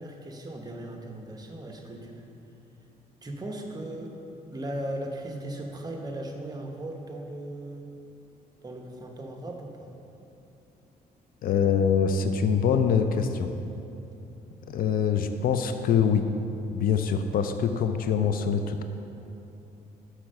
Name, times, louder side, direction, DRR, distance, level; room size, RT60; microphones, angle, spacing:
voice 1, 0.0-2.3 3.2-4.2 4.5-7.9 8.6-9.9, right 1 dB, 25° right, 1 dB, 0.9 m, -37 dB
voice 2, 11.4-13.5 14.7-16.2 16.7-18.8, left 7 dB, 65° left, 8 dB, 0.4 m, -24 dB
6.0 x 4.3 x 6.3 m, 2.9 s
cardioid pair, 85°, 16 cm